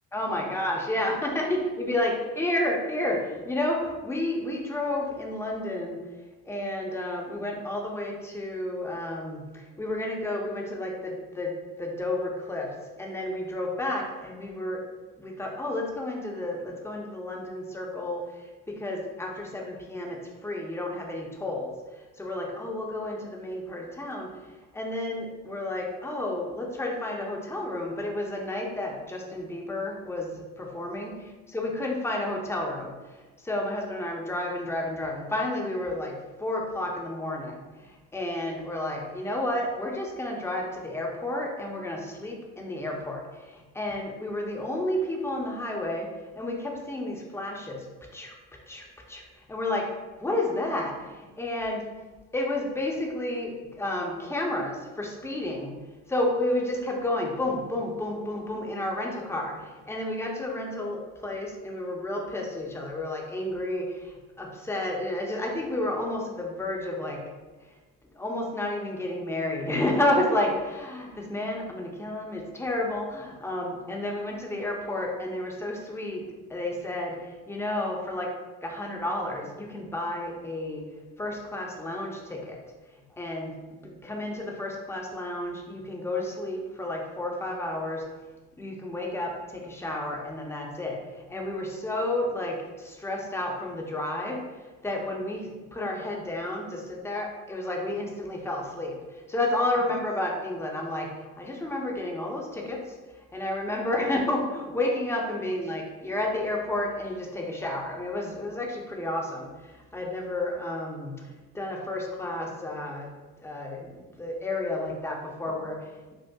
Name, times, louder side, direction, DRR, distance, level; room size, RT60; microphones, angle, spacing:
voice 1, 0.1-6.0 6.4-14.8 15.2-24.3 24.7-48.4 48.7-49.2 49.5-49.9 50.2-51.9 52.3-55.8 56.1-67.2 68.2-78.3 78.6-80.9 81.2-82.6 83.1-88.0 88.6-94.4 94.8-102.9 103.3-113.1 113.4-116.1, left 1 dB, 5° left, 0 dB, 0.6 m, -31 dB
5.3 x 2.1 x 2.3 m, 1.2 s
supercardioid pair, 90°, 37 cm